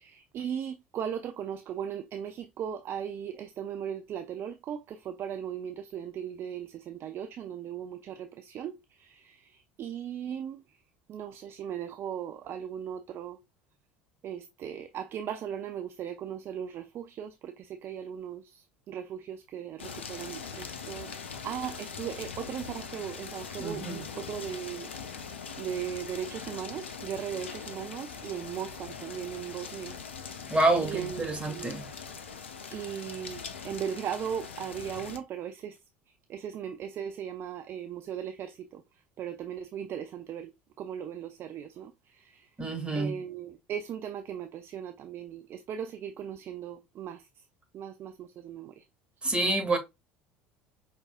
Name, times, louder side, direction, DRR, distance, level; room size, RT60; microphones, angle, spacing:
voice 1, 0.0-10.8 11.1-13.4 14.2-25.2 25.6-30.0 30.8-31.8 32.7-35.8 36.3-38.8 39.2-40.5 40.8-42.5 42.9-47.3 47.7-48.8, right 9 dB, 40° right, 0.4 m, -38 dB
sound 1, 19.8-35.2, left 6 dB, 75° left, 0.6 m, -42 dB
voice 2, 23.6-24.0 30.5-31.9 42.6-43.2 49.2-49.8, right 2 dB, 15° right, 1.8 m, -28 dB
5.3 x 3.6 x 2.3 m
figure-of-eight pair, 65°, 6 cm